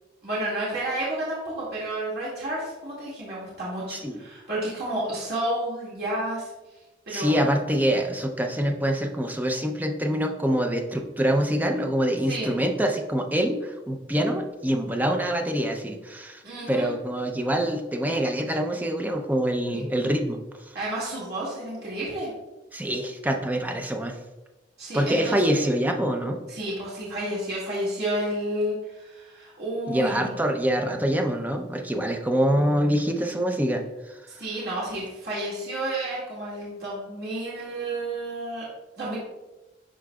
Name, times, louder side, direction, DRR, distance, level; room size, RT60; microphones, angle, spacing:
voice 1, 0.2-6.5 7.1-7.3 12.3-12.5 16.4-16.9 19.7-19.8 20.7-22.3 24.8-25.4 26.5-30.3 34.4-38.6 39.0-39.2, right 1 dB, 65° right, -8 dB, 2.1 m, -31 dB
voice 2, 3.9-4.2 7.1-16.4 16.7-20.4 22.7-24.2 24.9-26.4 29.9-34.2, equal, 10° right, 3 dB, 0.6 m, -25 dB
11.0 x 3.9 x 2.3 m, 1.1 s
head